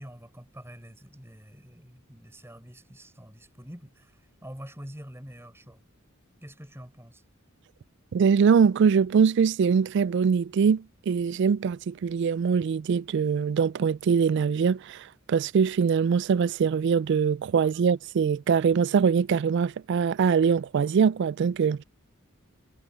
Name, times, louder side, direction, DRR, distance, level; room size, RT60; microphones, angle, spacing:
voice 1, 0.0-4.1 4.4-5.8 6.4-7.2, equal, 10° right, 5.6 m, -46 dB
voice 2, 8.1-21.8, right 6 dB, 60° right, 0.3 m, -23 dB
head